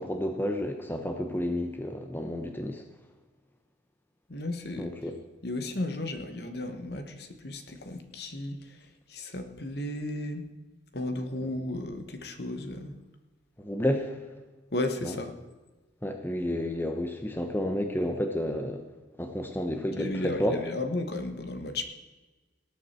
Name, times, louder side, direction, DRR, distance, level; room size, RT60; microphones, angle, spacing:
voice 1, 0.0-2.8 4.8-5.1 13.6-14.2 15.0-15.1 16.0-18.8 19.2-20.6, left 1 dB, 10° left, 5 dB, 0.9 m, -31 dB
voice 2, 4.3-4.9 5.4-10.5 10.9-12.9 14.7-15.4 19.9-21.8, left 2 dB, 55° left, 7 dB, 1.2 m, -34 dB
18.5 x 8.4 x 4.4 m, 1.2 s
head